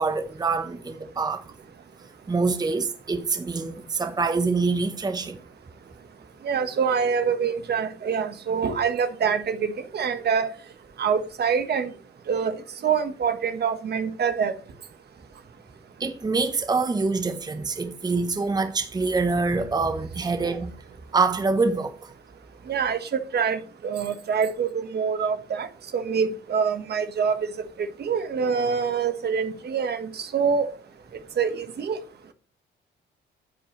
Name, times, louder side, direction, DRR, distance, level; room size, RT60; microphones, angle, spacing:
voice 1, 0.0-1.4 2.3-5.4 16.0-20.7 21.1-22.1, right 4 dB, 20° right, 0.9 m, -25 dB
voice 2, 6.4-10.5 11.0-11.9 12.3-12.6 12.8-14.5 22.7-25.7 25.9-27.4 27.8-30.7 31.4-32.0, right 6 dB, 55° right, 1.4 m, -25 dB
9.7 x 7.6 x 3.1 m
cardioid pair, 90°, 20 cm